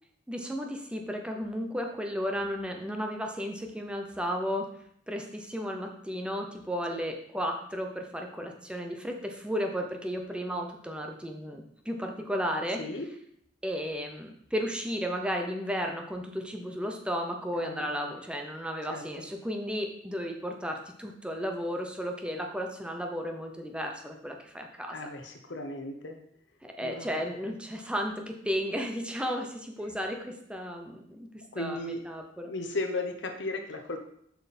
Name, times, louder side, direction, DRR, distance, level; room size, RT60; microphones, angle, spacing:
voice 1, 0.3-4.7 5.1-12.8 13.6-25.0 26.6-31.3 31.6-32.5, equal, 5° right, 3 dB, 0.8 m, -34 dB
voice 2, 17.6-18.1 18.9-19.2 24.9-26.2 26.8-27.1 31.5-32.0 32.4-34.0, left 2 dB, 70° left, 5 dB, 1.0 m, -36 dB
7.1 x 6.0 x 4.3 m, 0.69 s
head